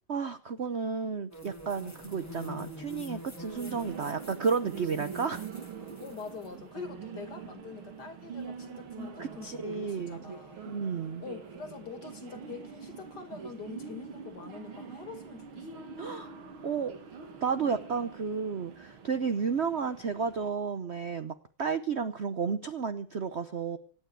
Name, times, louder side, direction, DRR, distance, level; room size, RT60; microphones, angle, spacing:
voice 1, 0.1-5.5 9.4-10.3 10.7-11.2 16.0-16.3 16.6-16.9 17.4-23.8, right 5 dB, 60° right, 0.7 m, -32 dB
sound 1, 1.3-6.5, equal, 10° left, 1.5 m, -45 dB
sound 2, 1.8-20.5, right 6 dB, 75° right, 2.8 m, -45 dB
voice 2, 6.0-10.6 11.2-15.9, left 5 dB, 50° left, 2.7 m, -44 dB
26.0 x 9.3 x 4.8 m
omnidirectional pair, 2.3 m